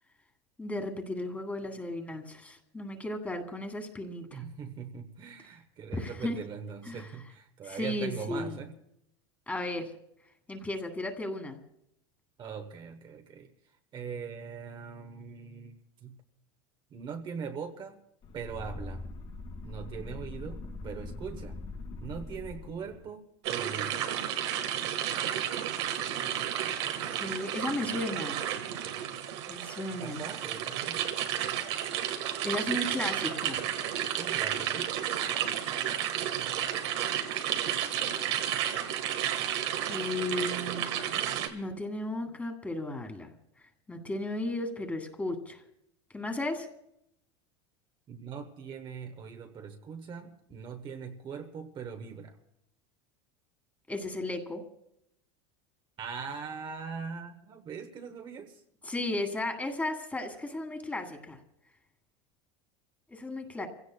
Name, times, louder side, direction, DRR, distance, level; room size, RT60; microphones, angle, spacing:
voice 1, 0.6-4.4 5.9-6.4 6.9-7.1 7.6-8.6 9.5-9.9 10.5-11.6 27.1-28.4 29.5-30.3 32.4-33.7 39.9-41.2 41.5-43.3 43.9-45.6 46.1-46.7 53.9-54.6 58.8-61.4 63.1-63.7, left 2 dB, 10° left, 1.7 m, -35 dB
voice 2, 4.3-8.7 12.4-13.5 13.9-16.1 16.9-18.0 18.3-19.1 19.6-21.6 22.0-24.1 29.9-31.1 34.2-34.9 48.1-52.4 56.0-58.6, right 6 dB, 35° right, 1.0 m, -41 dB
sound 1, 18.2-23.1, left 2 dB, 40° left, 1.7 m, -42 dB
sound 2, 23.4-41.5, right 10 dB, 80° right, 1.5 m, -32 dB
29.0 x 16.5 x 2.2 m
supercardioid pair, 130°, 14 cm